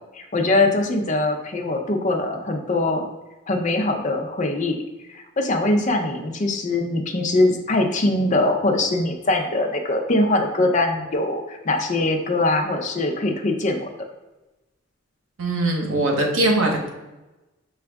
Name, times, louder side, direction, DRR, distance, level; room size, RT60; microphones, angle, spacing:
voice 1, 0.1-3.1 3.5-4.8 5.1-13.9, left 2 dB, 35° left, 3 dB, 0.5 m, -22 dB
voice 2, 15.4-16.9, right 1 dB, 75° right, 1 dB, 0.9 m, -21 dB
6.0 x 2.3 x 3.4 m, 1.0 s
head